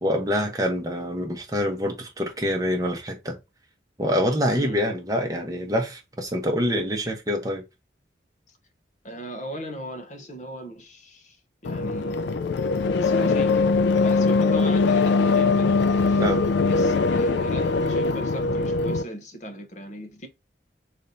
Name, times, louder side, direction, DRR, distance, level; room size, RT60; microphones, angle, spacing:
voice 1, 0.0-3.4 4.0-7.6 16.2-16.4, equal, 20° right, 0.8 m, -26 dB
voice 2, 9.0-11.4 11.6-12.3 12.9-13.7 14.0-16.3 16.6-20.3, equal, 40° left, 0.8 m, -38 dB
sound 1, 11.6-19.0, left 4 dB, 70° left, 0.4 m, -21 dB
3.3 x 2.7 x 3.9 m
head